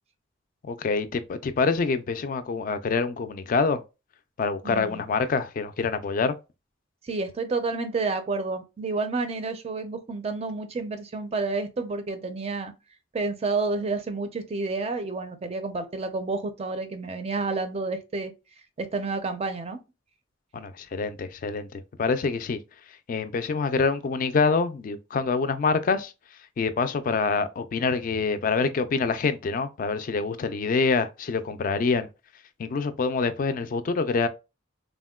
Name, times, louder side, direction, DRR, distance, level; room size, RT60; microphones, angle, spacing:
voice 1, 0.6-3.8 4.4-6.4 20.5-22.6 23.1-26.1 26.6-32.1 32.6-34.3, left 4 dB, 45° left, 0.3 m, -26 dB
voice 2, 4.6-5.0 7.0-12.7 13.1-18.3 18.8-19.8, right 3 dB, 30° right, 0.4 m, -30 dB
3.5 x 2.1 x 2.2 m
head